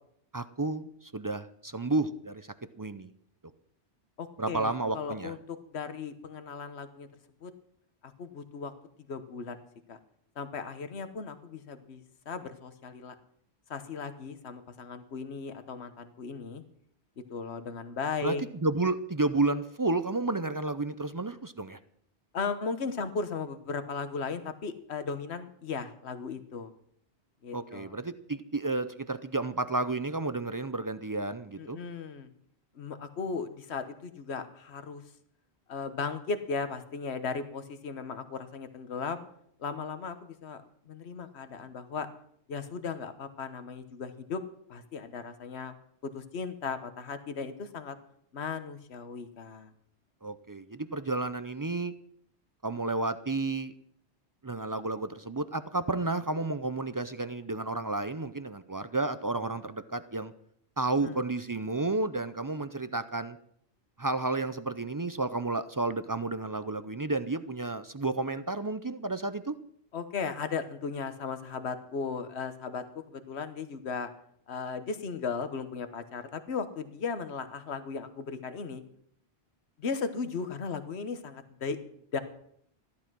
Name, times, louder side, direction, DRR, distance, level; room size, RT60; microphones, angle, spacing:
voice 1, 0.3-2.5 2.8-3.1 4.4-5.3 18.2-18.4 18.6-21.8 27.5-31.8 50.2-51.9 52.6-53.7 54.4-60.3 60.8-63.4 64.0-69.6, right 2 dB, 30° right, 12 dB, 0.3 m, -31 dB
voice 2, 4.2-7.1 7.4-7.5 8.0-8.7 9.1-10.0 10.4-13.1 13.7-16.6 17.3-18.4 22.3-26.7 27.4-28.0 31.6-32.3 32.7-35.0 35.7-39.2 39.6-42.1 42.5-44.4 44.7-45.7 46.1-48.0 48.3-49.7 61.0-61.2 69.9-74.1 74.5-78.8 79.8-82.2, left 5 dB, 70° left, 10 dB, 1.3 m, -36 dB
13.5 x 11.5 x 6.1 m, 0.68 s
omnidirectional pair, 1.1 m